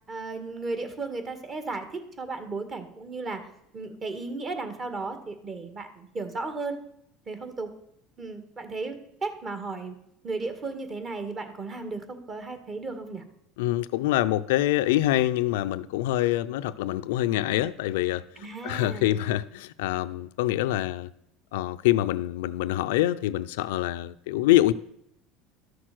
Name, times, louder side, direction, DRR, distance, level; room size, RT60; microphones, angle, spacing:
voice 1, 0.1-3.5 3.7-6.8 7.3-7.7 8.2-10.0 10.2-13.2 18.4-19.2, right 3 dB, 30° right, 1.9 m, -35 dB
voice 2, 13.6-18.2 18.6-21.1 21.5-24.7, left 15 dB, 90° left, 0.5 m, -25 dB
13.0 x 6.7 x 6.0 m
supercardioid pair, 125°, 0 cm